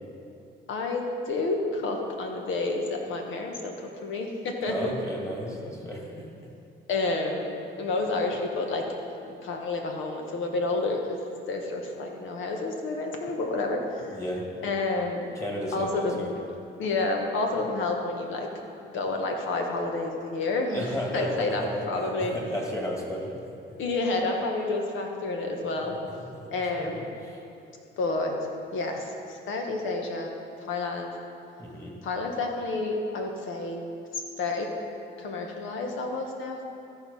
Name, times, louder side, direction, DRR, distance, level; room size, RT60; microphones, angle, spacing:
voice 1, 0.7-3.7 4.0-5.0 6.9-7.5 7.8-8.8 9.4-11.2 11.5-14.2 14.6-15.2 15.7-16.2 16.8-18.5 18.9-22.3 23.8-26.0 26.5-27.1 28.0-28.3 28.7-30.3 30.7-31.1 32.0-33.9 34.1-34.7 35.2-36.6, left 3 dB, 75° left, 2 dB, 1.3 m, -29 dB
voice 2, 4.7-6.3 14.1-14.4 15.4-16.3 20.7-21.7 22.2-23.4 26.3-27.4 31.6-32.0, equal, 15° left, -1 dB, 2.1 m, -33 dB
14.0 x 4.6 x 5.5 m, 2.6 s
cardioid pair, 90°, 20 cm